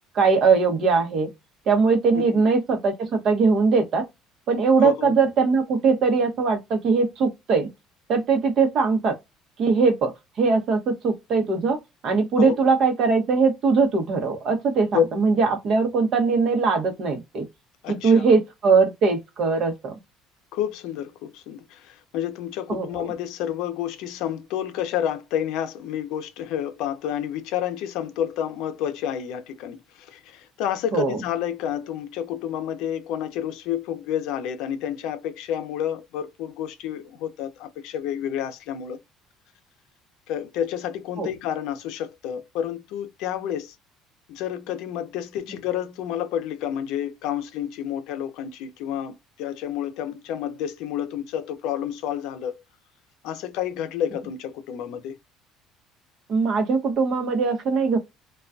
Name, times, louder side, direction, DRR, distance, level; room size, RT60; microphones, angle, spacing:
voice 1, 0.1-1.3 1.7-4.0 4.5-7.7 8.1-9.2 9.6-10.1 10.4-11.8 12.0-17.5 17.9-19.9 22.7-23.1 30.9-31.2 41.2-41.3 56.3-58.0, right 4 dB, 45° right, 0.8 m, -21 dB
voice 2, 4.8-5.1 12.4-12.6 14.9-15.0 17.8-18.3 20.5-39.0 40.3-43.7 44.3-52.5 53.2-55.2, left 10 dB, 75° left, 0.5 m, -29 dB
2.3 x 2.2 x 2.5 m
cardioid pair, 150°, 0 cm